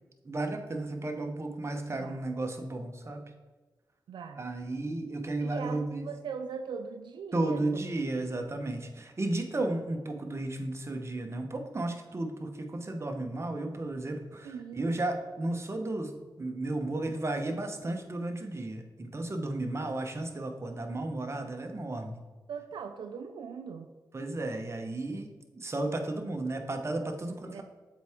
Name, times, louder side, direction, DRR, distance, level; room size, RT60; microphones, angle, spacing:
voice 1, 0.2-3.2 4.4-6.1 7.3-16.1 16.4-22.2 24.1-25.3 25.5-27.6, right 2 dB, 35° right, 4 dB, 1.0 m, -33 dB
voice 2, 4.1-4.5 5.4-7.6 14.4-14.9 22.5-23.9 27.5-27.6, right 6 dB, 85° right, 7 dB, 0.4 m, -40 dB
7.3 x 4.7 x 3.6 m, 1.3 s
cardioid pair, 60°, 8 cm